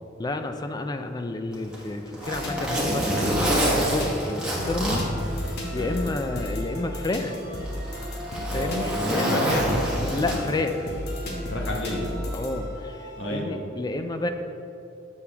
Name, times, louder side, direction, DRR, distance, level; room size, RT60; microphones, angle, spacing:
voice 1, 0.2-5.1 5.7-7.4 8.5-9.4 10.1-10.9 12.3-14.3, left 2 dB, 20° left, 7 dB, 0.4 m, -30 dB
Zipper (clothing), 1.5-6.0 6.4-6.5 7.3-10.7 11.9-12.1, equal, 5° right, 1.2 m, -27 dB
sound 1, 2.2-13.4, left 1 dB, 60° left, 1.2 m, -33 dB
voice 2, 5.7-6.1 8.5-9.9 11.5-12.1 13.2-13.6, left 1 dB, 80° left, 0 dB, 1.1 m, -31 dB
7.0 x 6.7 x 3.5 m, 2.8 s
head